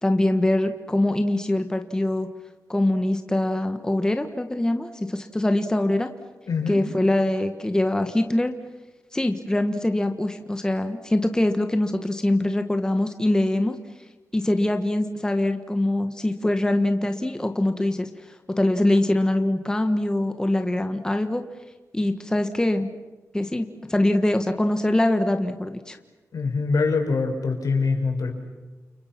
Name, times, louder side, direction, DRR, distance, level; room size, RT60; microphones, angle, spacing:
voice 1, 0.0-2.3 2.7-6.1 6.7-8.5 9.1-13.8 14.3-21.4 21.9-22.9 23.3-26.0, left 1 dB, 10° left, 7 dB, 1.4 m, -23 dB
voice 2, 6.5-6.8 26.3-28.3, left 4 dB, 80° left, 3 dB, 5.7 m, -24 dB
30.0 x 29.5 x 6.1 m, 1.2 s
wide cardioid pair, 155°, 6 cm